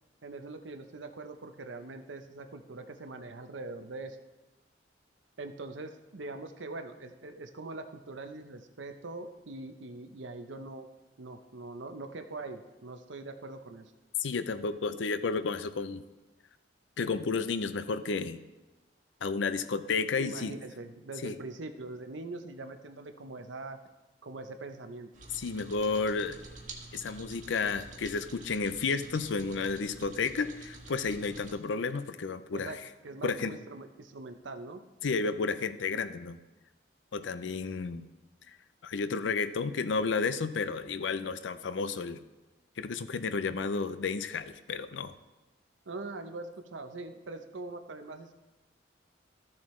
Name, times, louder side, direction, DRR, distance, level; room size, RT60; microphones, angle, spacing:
voice 1, 0.2-4.2 5.4-10.9 11.2-13.9 20.2-23.8 24.2-25.1 32.5-32.8 33.0-34.8 45.9-48.3, right 2 dB, 85° right, 7 dB, 0.8 m, -42 dB
voice 2, 14.2-16.0 17.0-18.4 19.2-20.6 21.2-21.4 25.4-26.4 26.9-32.7 33.2-33.6 35.0-36.4 37.1-38.1 38.8-42.2 42.8-45.2, left 4 dB, 80° left, 12 dB, 0.5 m, -32 dB
sound 1, 25.1-31.6, right 3 dB, 45° right, 1.3 m, -48 dB
14.0 x 7.3 x 3.2 m, 1.1 s
head